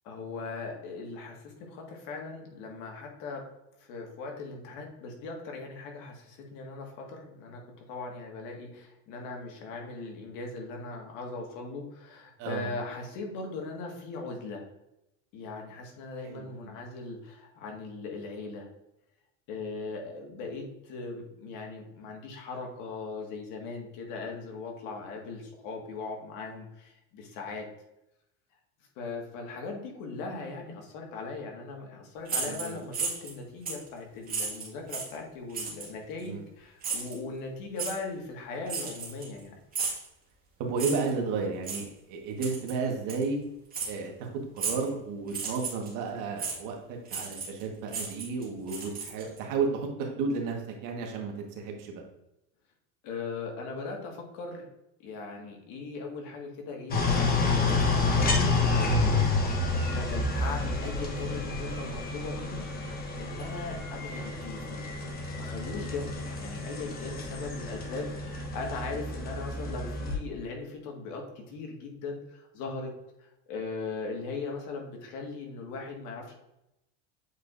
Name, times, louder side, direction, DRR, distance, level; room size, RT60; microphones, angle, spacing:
voice 1, 0.0-3.5 3.9-14.6 15.3-18.7 19.5-27.7 29.0-39.6 53.0-54.7 55.0-59.3 59.7-64.9 65.3-72.9 73.5-76.3, left 3 dB, 60° left, 1 dB, 1.9 m, -39 dB
voice 2, 16.2-16.7 32.4-32.8 36.2-36.4 40.6-43.4 43.8-44.3 44.5-51.9, right 4 dB, 55° right, 2 dB, 1.6 m, -33 dB
sound 1, 32.3-33.3 33.7-33.9 34.3-35.2 35.5-35.9 36.8-37.2 37.8-38.0 38.7-39.4 39.7-40.1 40.8-41.1 41.6-41.8 42.4-42.7 43.1-43.2 43.7-43.9 44.6-44.9 45.3-45.9 46.4-46.6 47.1-47.6 47.9-49.4, right 5 dB, 25° right, 1.8 m, -34 dB
sound 2, 56.9-70.1, left 3 dB, 25° left, 1.2 m, -29 dB
8.1 x 4.6 x 2.6 m, 0.88 s
supercardioid pair, 140°, 36 cm